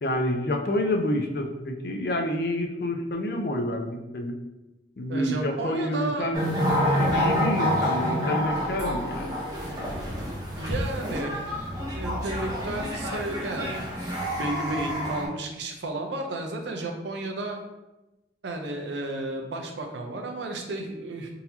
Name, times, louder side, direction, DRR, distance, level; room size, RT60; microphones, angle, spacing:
voice 1, 0.0-4.4 5.0-6.5 6.8-9.4, left 1 dB, 60° left, 4 dB, 0.5 m, -28 dB
voice 2, 5.1-6.3 10.6-11.7 11.9-17.6 18.4-21.3, right 2 dB, 85° right, 3 dB, 0.6 m, -33 dB
sound 1, 6.3-15.3, equal, 20° right, 0.8 m, -28 dB
3.9 x 2.7 x 2.8 m, 1.0 s
head